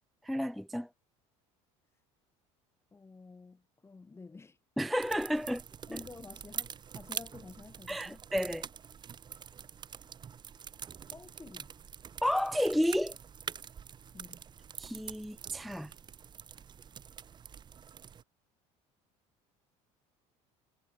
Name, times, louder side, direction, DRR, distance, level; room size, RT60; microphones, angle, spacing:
voice 1, 0.2-0.9 4.8-5.6 5.9-6.0 7.9-8.6 12.2-13.2 14.8-15.9, equal, ahead, 0.3 m, -31 dB
voice 2, 2.9-4.6 5.9-8.2 11.1-11.7 14.1-14.4, left 4 dB, 15° left, 2.7 m, -50 dB
sound 1, 5.0-18.2, right 7 dB, 30° right, 1.0 m, -45 dB
supercardioid pair, 115°, 16 cm